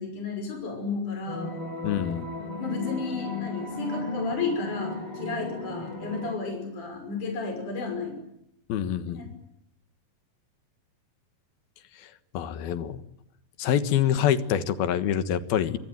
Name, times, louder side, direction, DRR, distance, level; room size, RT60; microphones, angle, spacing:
voice 1, 0.0-1.5 2.6-8.2 9.1-9.2, left 4 dB, 55° left, 5 dB, 7.4 m, -32 dB
sound 1, 1.3-6.3, left 2 dB, 40° left, 4.9 m, -35 dB
voice 2, 1.8-2.2 8.7-9.2 12.3-13.0 13.6-15.8, left 9 dB, 85° left, 12 dB, 3.4 m, -25 dB
25.5 x 25.0 x 9.3 m, 0.79 s
omnidirectional pair, 4.2 m